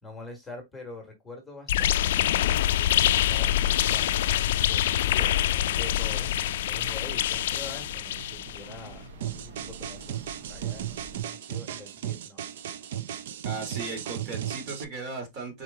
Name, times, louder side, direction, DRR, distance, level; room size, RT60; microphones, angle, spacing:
voice 1, 0.0-6.3 6.6-12.4, left 2 dB, 5° left, 1.4 m, -45 dB
sound 1, 1.7-8.7, left 12 dB, 70° left, 0.3 m, -25 dB
sound 2, 5.6-11.2, right 3 dB, 85° right, 1.4 m, -46 dB
sound 3, 9.2-14.8, right 10 dB, 70° right, 0.5 m, -35 dB
voice 2, 13.4-15.6, right 3 dB, 40° right, 1.8 m, -36 dB
4.4 x 3.1 x 3.5 m
supercardioid pair, 155°, 0 cm